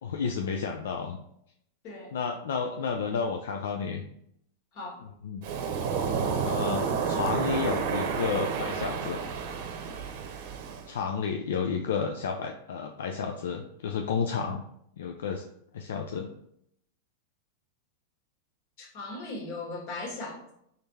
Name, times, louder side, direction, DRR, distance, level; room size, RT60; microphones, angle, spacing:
voice 1, 0.0-1.2 2.1-4.0 5.2-5.4 6.4-9.2 10.9-14.6 15.0-15.4 15.7-16.3, left 6 dB, 80° left, 3 dB, 0.4 m, -31 dB
Waves surf, 5.4-10.9, right 6 dB, 60° right, 0.7 m, -30 dB
voice 2, 18.8-20.5, left 2 dB, 50° left, -1 dB, 1.7 m, -38 dB
3.7 x 3.5 x 4.1 m, 0.74 s
hypercardioid pair, 120°, 0 cm